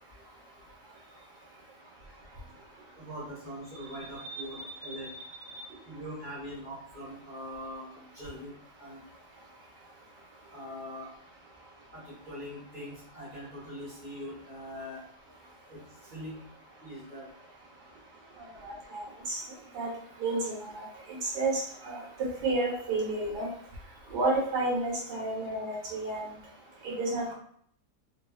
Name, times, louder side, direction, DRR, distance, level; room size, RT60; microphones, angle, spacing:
voice 1, 3.0-5.1 5.8-9.0 10.5-11.1 11.9-15.0 15.7-16.4 16.8-17.3, equal, 30° right, -12 dB, 1.3 m, -42 dB
voice 2, 4.3-4.6 4.9-5.0 5.5-5.6 18.6-19.4 19.7-19.9 20.2-22.0 22.4-23.5 24.1-26.3 26.8-27.3, right 2 dB, 85° right, -4 dB, 1.5 m, -31 dB
3.3 x 3.0 x 2.2 m, 0.63 s
omnidirectional pair, 1.8 m